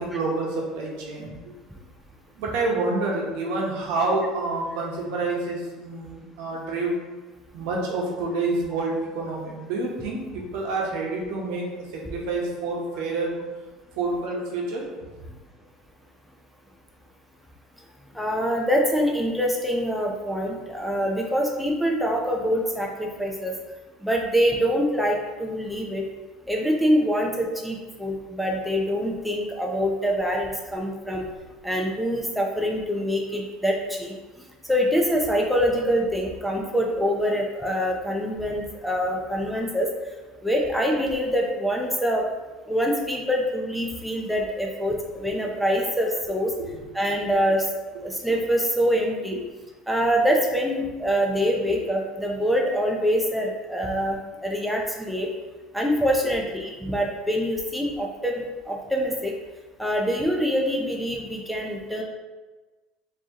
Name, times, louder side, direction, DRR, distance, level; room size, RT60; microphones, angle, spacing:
voice 1, 0.0-1.5 2.4-7.0 7.5-11.7 11.9-13.4 13.9-15.1 46.6-46.7, right 3 dB, 75° right, -1 dB, 1.0 m, -28 dB
voice 2, 18.1-23.5 24.0-26.0 26.5-31.3 31.6-34.1 34.7-39.9 40.4-42.2 42.7-46.5 46.9-47.7 48.0-49.4 49.9-55.3 55.7-59.3 59.8-62.0, equal, ahead, -1 dB, 0.6 m, -25 dB
4.5 x 2.9 x 2.9 m, 1.2 s
supercardioid pair, 105°, 0 cm